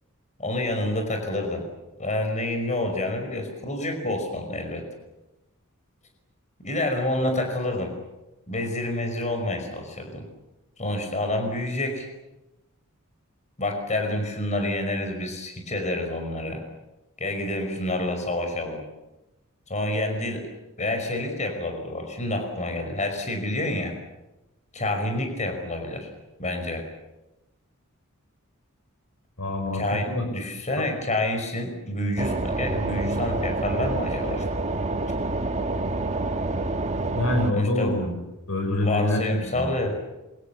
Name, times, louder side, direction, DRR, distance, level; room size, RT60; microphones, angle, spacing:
voice 1, 0.4-1.6 2.0-4.8 6.6-7.9 8.5-10.2 10.8-12.1 13.6-16.6 17.2-18.8 19.7-20.5 20.8-23.9 24.7-26.1 26.4-26.9 29.7-34.4 37.5-38.0 38.8-39.9, left 1 dB, 35° left, 4 dB, 5.6 m, -28 dB
voice 2, 29.4-29.8 30.1-30.3 37.1-38.2 38.5-39.7, left 1 dB, 80° left, 3 dB, 6.1 m, -25 dB
sound 1, 32.2-37.5, right 2 dB, 35° right, 1.4 m, -27 dB
28.0 x 25.5 x 7.1 m, 1.0 s
head